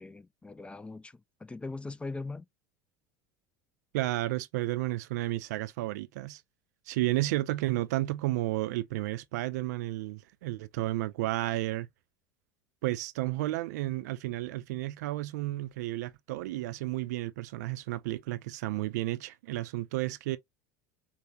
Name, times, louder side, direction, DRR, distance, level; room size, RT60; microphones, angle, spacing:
voice 1, 0.0-2.5, left 3 dB, 10° left, 0.4 m, -40 dB
voice 2, 3.9-6.4 6.9-11.9 12.8-20.4, right 17 dB, 65° right, 0.4 m, -32 dB
5.4 x 2.1 x 2.7 m
figure-of-eight pair, 75°, 10 cm